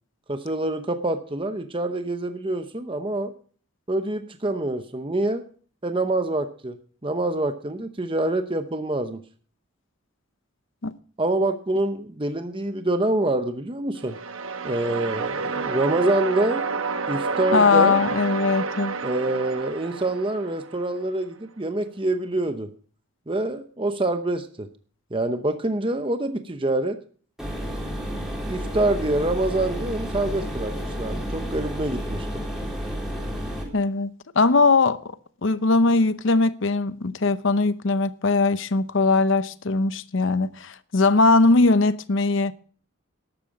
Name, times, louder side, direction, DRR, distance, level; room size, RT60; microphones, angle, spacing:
voice 1, 0.3-3.3 3.9-5.4 5.8-6.8 7.0-9.2 11.2-14.2 14.6-16.6 17.1-18.0 19.0-22.7 23.3-24.7 25.1-27.0 27.8-32.3, right 2 dB, 25° right, 0.8 m, -26 dB
sound 1, 14.0-21.0, right 4 dB, 75° right, 1.1 m, -30 dB
voice 2, 17.5-19.0 33.7-35.0 35.4-42.5, left 3 dB, 65° left, 0.8 m, -20 dB
sound 2, 27.4-33.6, equal, ahead, 3.9 m, -31 dB
13.0 x 11.0 x 4.8 m
head